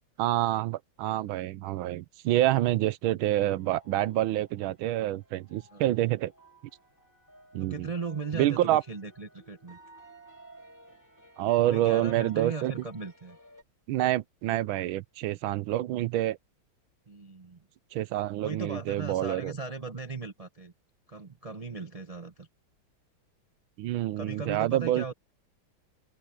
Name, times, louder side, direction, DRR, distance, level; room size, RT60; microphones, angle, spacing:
voice 1, 0.2-6.3 7.5-7.9 8.3-8.8 11.4-12.7 13.9-16.4 17.9-19.5 23.8-25.1, right 14 dB, 85° right, 1.4 m, -27 dB
sound 1, 3.3-13.6, right 2 dB, 10° left, 2.8 m, -55 dB
voice 2, 7.6-9.8 11.6-13.4 17.1-17.6 18.4-20.7 21.1-22.5 24.2-25.1, right 4 dB, 50° right, 0.4 m, -37 dB
open air
omnidirectional pair, 2.2 m